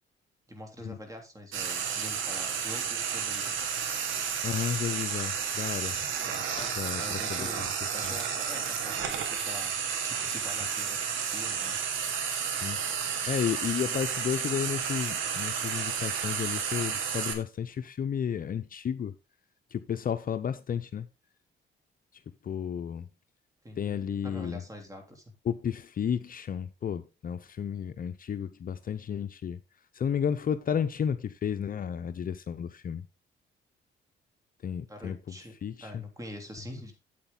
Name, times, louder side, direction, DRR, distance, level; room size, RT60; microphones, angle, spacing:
voice 1, 0.5-3.7 6.3-6.5 7.0-9.8 10.0-11.8 23.6-25.2 34.9-35.5 35.8-36.9, equal, 15° right, 3.3 m, -45 dB
Frying (food), 1.5-17.3, right 7 dB, 80° right, 2.0 m, -32 dB
voice 2, 4.4-6.0 6.8-7.7 8.0-8.1 12.6-12.8 13.3-19.1 19.7-21.1 22.4-23.1 23.8-24.6 25.5-29.6 29.9-33.0 34.6-35.4 35.6-36.0, left 8 dB, 45° left, 0.6 m, -32 dB
sound 1, 4.7-5.4 6.2-6.3 6.5-7.0 7.7-8.9, left 2 dB, 25° left, 4.5 m, -50 dB
8.6 x 8.0 x 3.8 m
cardioid pair, 90°, 20 cm